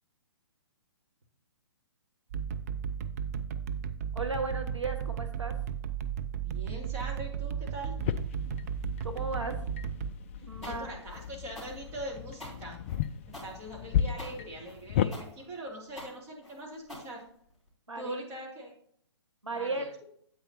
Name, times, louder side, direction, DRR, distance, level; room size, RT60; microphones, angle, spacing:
sound 1, 2.3-10.1, right 8 dB, 35° right, 0.5 m, -35 dB
voice 1, 4.1-5.5 9.0-9.6 10.4-10.9 17.9-18.2 19.4-19.9, right 3 dB, 85° right, 3 dB, 1.7 m, -35 dB
voice 2, 6.3-7.9 10.4-12.8 13.3-17.2 18.0-18.7 19.5-19.9, right 1 dB, 15° right, -3 dB, 2.3 m, -42 dB
sound 2, 8.0-15.1, left 9 dB, 25° left, 0.3 m, -34 dB
sound 3, 10.6-17.7, equal, ahead, 3.6 m, -46 dB
9.1 x 8.4 x 2.8 m, 0.66 s
figure-of-eight pair, 130°, 15 cm